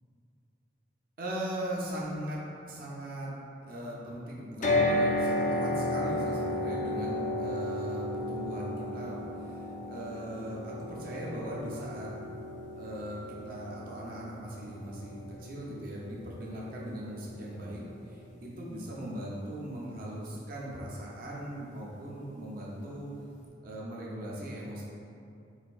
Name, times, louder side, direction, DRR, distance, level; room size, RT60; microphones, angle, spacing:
voice 1, 1.2-2.4 2.7-3.3 3.6-12.1 12.7-23.1 23.6-24.8, right 1 dB, 50° right, -5 dB, 0.5 m, -39 dB
sound 1, 4.6-18.7, left 1 dB, 40° left, 0.3 m, -34 dB
4.1 x 2.5 x 2.3 m, 2.5 s
head